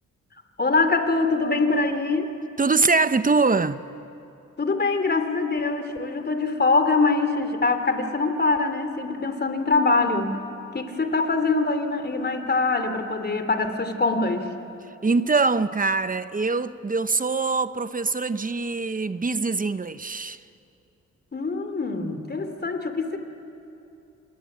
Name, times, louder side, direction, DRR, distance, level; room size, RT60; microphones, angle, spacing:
voice 1, 0.6-2.3 4.6-10.4 10.7-14.5 21.3-23.2, left 3 dB, 35° left, 3.0 m, -23 dB
voice 2, 2.6-3.8 15.0-20.4, right 4 dB, 25° right, 1.0 m, -23 dB
27.5 x 21.5 x 8.7 m
cardioid pair, 65°, 31 cm